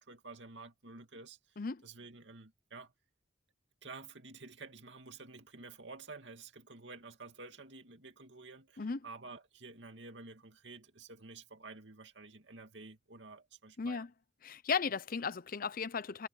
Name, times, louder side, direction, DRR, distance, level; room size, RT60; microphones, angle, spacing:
voice 1, 0.0-2.9 3.8-14.1, right 3 dB, 85° right, 2.5 m, -51 dB
voice 2, 13.8-14.1 14.4-16.3, left 5 dB, 55° left, 0.7 m, -35 dB
head